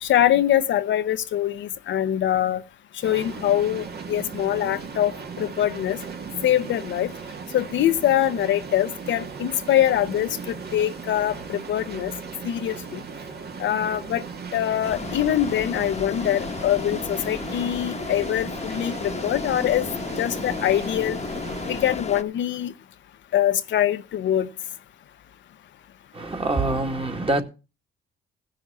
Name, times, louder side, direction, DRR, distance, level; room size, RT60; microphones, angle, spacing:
voice 1, 0.0-2.6 3.0-6.0 6.4-7.1 7.5-12.1 12.4-13.0 13.6-14.2 14.5-19.9 20.2-21.2 21.7-22.7 23.3-24.5, left 11 dB, 70° left, 0.8 m, -23 dB
sound 1, 3.0-21.8, right 5 dB, 55° right, 1.9 m, -37 dB
sound 2, 14.8-22.2, left 5 dB, 35° left, 1.2 m, -33 dB
voice 2, 26.1-27.4, right 2 dB, 30° right, 2.0 m, -25 dB
16.5 x 6.5 x 5.5 m
cardioid pair, 90°, 20 cm